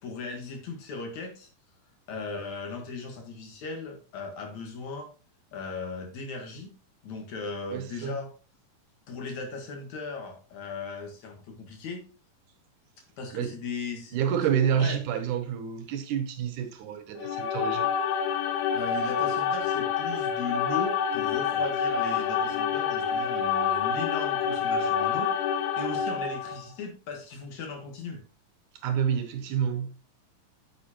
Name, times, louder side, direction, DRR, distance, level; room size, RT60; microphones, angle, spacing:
voice 1, 0.0-1.5 2.1-5.1 5.5-6.7 7.0-8.3 9.1-12.0 13.2-14.2 14.7-15.0 18.7-28.2, left 4 dB, 60° left, 2.6 m, -37 dB
voice 2, 7.7-8.2 13.3-13.6 14.1-17.9 28.8-30.0, right 8 dB, 75° right, 2.2 m, -28 dB
sound 1, 17.2-26.6, left 7 dB, 80° left, 2.6 m, -27 dB
9.3 x 7.0 x 2.9 m
omnidirectional pair, 3.9 m